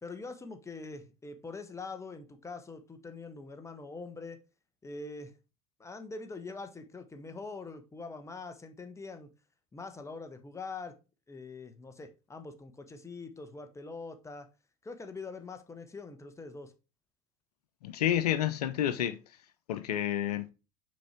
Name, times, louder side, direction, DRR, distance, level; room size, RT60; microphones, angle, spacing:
voice 1, 0.0-4.4 4.8-5.4 5.8-9.3 9.7-11.0 11.3-14.5 14.8-16.7, left 3 dB, 15° left, 1.2 m, -43 dB
voice 2, 17.8-19.2 19.7-20.4, left 11 dB, 85° left, 0.8 m, -29 dB
6.3 x 4.5 x 4.4 m
hypercardioid pair, 85°, 19 cm